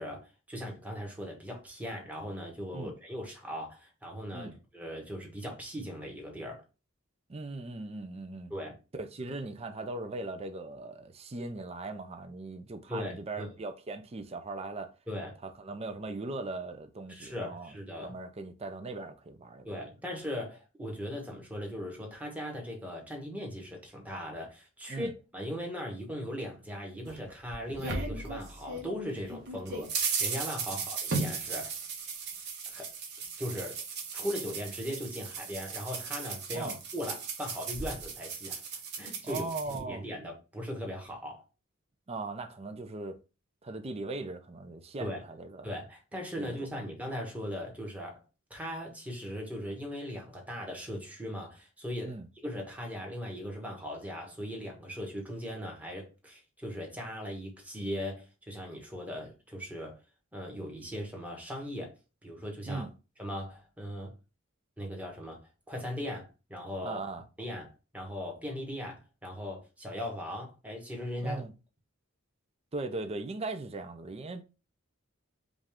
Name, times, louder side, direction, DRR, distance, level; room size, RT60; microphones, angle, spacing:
voice 1, 0.0-6.6 8.5-8.7 12.9-13.5 15.1-15.3 17.1-18.2 19.6-31.8 32.7-32.9 33.4-33.8 34.1-38.6 39.0-41.4 45.0-45.2 45.6-48.2 48.5-52.2 52.4-60.0 60.3-61.9 62.2-62.9 63.2-64.1 64.8-65.4 65.7-67.0 67.4-71.4, equal, 5° right, 1.2 m, -39 dB
voice 2, 7.3-8.5 8.9-14.9 15.4-17.7 18.0-19.8 24.9-25.1 36.5-36.8 39.2-40.0 42.1-43.2 43.6-45.8 46.4-46.7 52.1-52.3 62.6-62.9 66.8-67.2 71.2-71.5 72.7-74.4, right 3 dB, 30° right, 0.5 m, -39 dB
sound 1, 27.1-28.9 29.3-39.8, right 4 dB, 55° right, 1.1 m, -36 dB
5.1 x 2.5 x 3.5 m
head